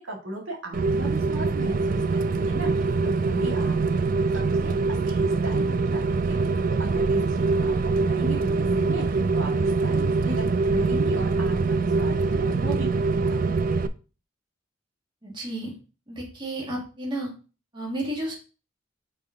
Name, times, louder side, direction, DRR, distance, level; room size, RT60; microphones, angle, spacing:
voice 1, 0.0-4.0 4.3-4.7 5.1-7.7 8.0-13.4, right 1 dB, 85° right, -1 dB, 2.0 m, -37 dB
Rain, 0.7-13.9, right 3 dB, 45° right, 0.4 m, -24 dB
voice 2, 15.2-15.7 16.1-17.3 17.7-18.3, right 1 dB, 25° right, -3 dB, 1.9 m, -32 dB
5.3 x 4.1 x 4.3 m, 0.34 s
head